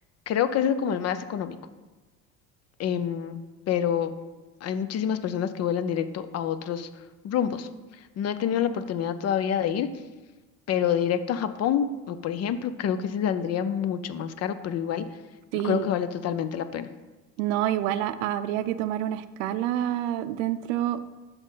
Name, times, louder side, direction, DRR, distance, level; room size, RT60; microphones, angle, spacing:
voice 1, 0.3-1.6 2.8-4.1 4.6-6.9 7.2-7.7 8.2-9.9 10.7-15.1 15.5-16.9, left 9 dB, 45° left, 12 dB, 0.5 m, -27 dB
voice 2, 15.5-15.9 17.4-21.1, right 12 dB, 85° right, 13 dB, 0.6 m, -27 dB
6.0 x 5.3 x 5.6 m, 1.2 s
supercardioid pair, 100°, 37 cm